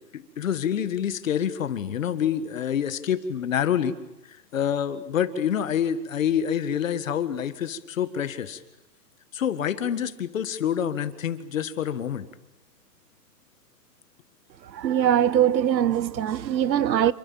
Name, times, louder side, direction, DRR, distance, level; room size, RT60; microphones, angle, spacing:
voice 1, 0.1-4.0 4.5-8.6 9.3-12.3, left 9 dB, 50° left, 1.8 m, -27 dB
voice 2, 14.7-17.1, right 10 dB, 90° right, 1.2 m, -22 dB
28.0 x 24.5 x 7.2 m
hypercardioid pair, 180°, 50 cm